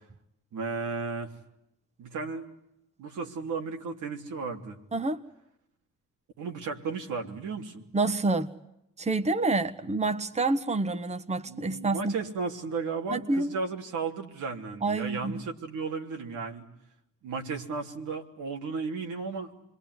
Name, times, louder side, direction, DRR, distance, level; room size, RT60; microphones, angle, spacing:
voice 1, 0.5-1.3 2.0-2.5 3.0-4.8 6.4-7.9 11.5-16.7 17.2-19.5, right 4 dB, 80° right, 2 dB, 3.4 m, -34 dB
voice 2, 4.9-5.2 7.9-8.5 9.0-12.1 13.1-13.5 14.8-15.4, right 3 dB, 20° right, 8 dB, 1.4 m, -28 dB
27.0 x 22.5 x 9.7 m, 0.84 s
cardioid pair, 90°, 30 cm